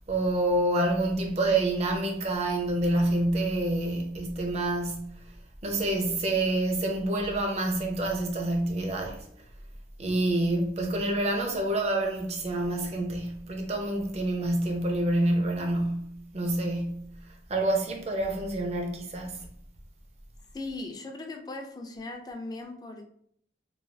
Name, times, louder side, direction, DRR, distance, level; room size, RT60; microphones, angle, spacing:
voice 1, 0.1-5.3 5.6-9.2 10.0-17.2 17.5-19.4, right 1 dB, 40° right, 0.5 m, -27 dB
voice 2, 20.5-23.1, left 2 dB, 20° left, 0.3 m, -38 dB
3.1 x 2.3 x 2.6 m
head